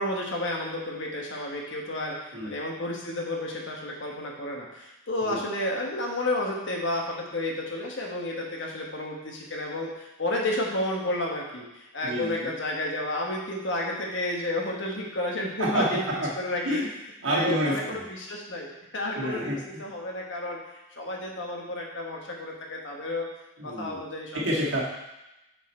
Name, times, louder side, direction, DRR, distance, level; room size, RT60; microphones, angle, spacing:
voice 1, 0.0-16.0 16.4-16.8 17.3-20.6 21.0-23.3 23.6-24.4 24.7-24.8, left 1 dB, 75° left, -1 dB, 1.2 m, -31 dB
voice 2, 12.0-12.5 15.6-16.3 16.6-16.9 17.2-18.0 19.1-19.8 23.6-24.0 24.3-24.8, equal, 85° right, -5 dB, 1.6 m, -28 dB
6.1 x 4.1 x 4.3 m, 0.95 s
head